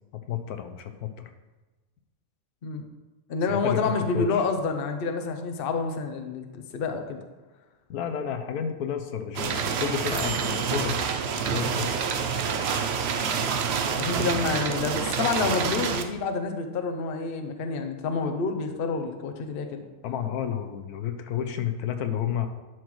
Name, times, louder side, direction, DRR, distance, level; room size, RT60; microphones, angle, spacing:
voice 1, 0.3-1.3 3.5-4.4 7.9-12.2 20.0-22.5, left 9 dB, 85° left, 8 dB, 1.2 m, -31 dB
voice 2, 3.3-7.2 14.0-19.8, left 4 dB, 50° left, 5 dB, 0.8 m, -28 dB
sound 1, 9.3-16.0, right 6 dB, 60° right, 0.7 m, -27 dB
10.5 x 6.2 x 3.1 m, 1.2 s
omnidirectional pair, 1.6 m